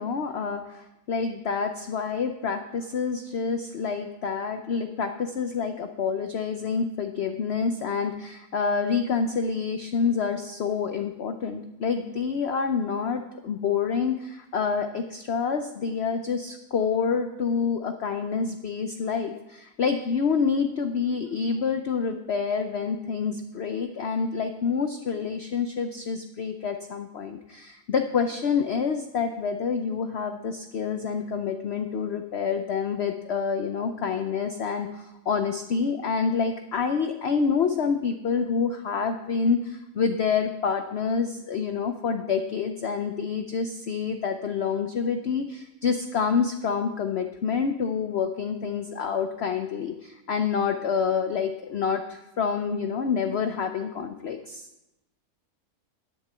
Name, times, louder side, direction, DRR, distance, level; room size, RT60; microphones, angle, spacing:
voice 1, 0.0-54.7, left 6 dB, 55° left, 7 dB, 0.8 m, -27 dB
11.0 x 6.7 x 7.5 m, 0.93 s
omnidirectional pair, 1.7 m